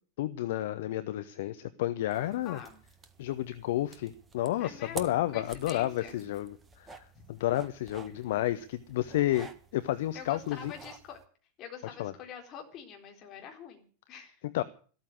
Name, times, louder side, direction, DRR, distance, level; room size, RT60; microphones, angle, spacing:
voice 1, 0.2-2.6 3.2-10.6 12.0-12.1 14.5-14.6, left 14 dB, 55° left, 12 dB, 0.8 m, -31 dB
sound 1, 2.1-11.2, right 3 dB, 15° right, 1.5 m, -50 dB
voice 2, 2.4-2.8 4.6-6.1 7.1-7.2 10.1-11.2 11.6-14.4, left 7 dB, 35° left, 2 dB, 4.1 m, -46 dB
14.0 x 13.5 x 6.5 m, 0.41 s
figure-of-eight pair, 90°, 0 cm